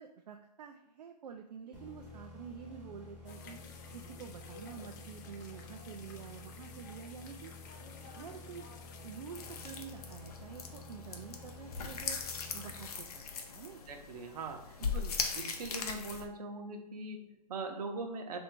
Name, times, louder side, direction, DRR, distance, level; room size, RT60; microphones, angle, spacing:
voice 1, 0.0-8.7 9.0-13.8 14.8-15.1, right 7 dB, 80° right, 3 dB, 0.4 m, -48 dB
sound 1, 1.7-13.4, left 3 dB, 5° right, 0.8 m, -51 dB
sound 2, 3.3-9.8, left 5 dB, 30° left, 0.3 m, -53 dB
sound 3, 9.4-16.3, left 5 dB, 65° left, 0.7 m, -40 dB
voice 2, 13.9-15.0 15.3-18.4, right 3 dB, 65° right, 4 dB, 0.8 m, -41 dB
3.2 x 2.6 x 4.4 m, 0.78 s
hypercardioid pair, 150°, 21 cm